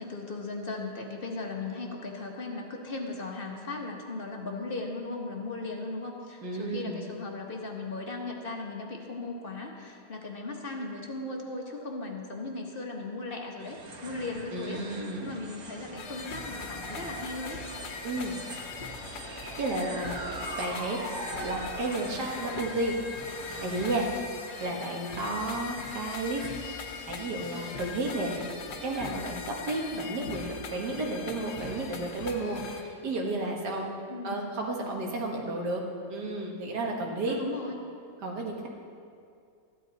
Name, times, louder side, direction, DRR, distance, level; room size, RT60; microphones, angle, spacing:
voice 1, 0.0-17.6 24.6-24.8 29.9-30.1 34.1-34.4 37.3-37.8, left 2 dB, 40° left, 1 dB, 1.2 m, -37 dB
voice 2, 6.4-7.0 14.5-15.4 18.0-18.4 19.6-20.2 20.6-21.0 21.4-22.9 23.6-24.1 24.6-26.8 27.0-28.4 28.8-34.0 34.2-35.8 36.1-37.4 38.2-38.7, right 2 dB, 90° right, 0 dB, 2.1 m, -32 dB
sound 1, 13.6-30.1, right 2 dB, 65° right, 1.7 m, -43 dB
sound 2, 16.0-32.8, left 5 dB, 85° left, 1.6 m, -41 dB
14.0 x 11.5 x 4.0 m, 2.4 s
omnidirectional pair, 1.7 m